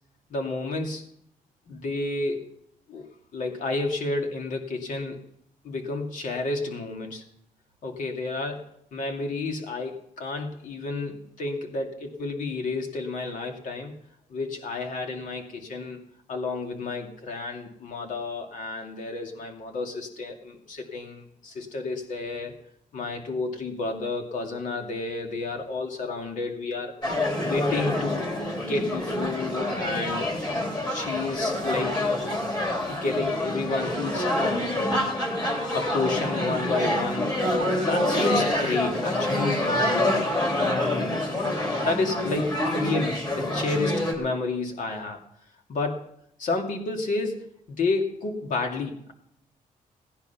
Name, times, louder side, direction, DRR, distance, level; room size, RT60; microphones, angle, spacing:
voice 1, 0.3-1.0 1.7-2.5 2.9-3.1 3.3-5.2 5.6-7.2 7.8-13.9 14.3-16.0 16.3-22.5 22.9-27.0 27.4-28.3 28.7-30.5 30.8-32.0 32.9-34.3 35.7-37.4 37.9-39.9 40.5-41.3 41.8-45.2 45.7-46.0 46.4-49.1, left 3 dB, 60° left, 3 dB, 2.5 m, -30 dB
sound 1, 27.0-44.1, left 1 dB, 30° left, 3.7 m, -26 dB
17.5 x 10.5 x 5.8 m, 0.70 s
wide cardioid pair, 170°, 15 cm